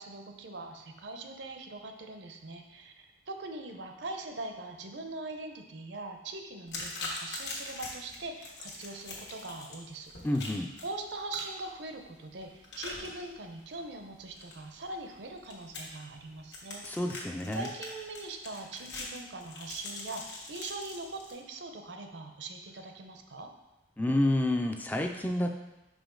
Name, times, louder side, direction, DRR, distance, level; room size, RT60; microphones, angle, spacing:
voice 1, 0.0-10.1 10.8-16.8 17.5-23.5, right 2 dB, 75° right, 5 dB, 0.7 m, -42 dB
sound 1, 6.7-21.3, left 3 dB, 75° left, 1.3 m, -44 dB
voice 2, 10.2-10.7 16.8-17.7 24.0-25.5, left 1 dB, 10° left, 3 dB, 0.3 m, -29 dB
5.4 x 5.0 x 3.8 m, 0.98 s
head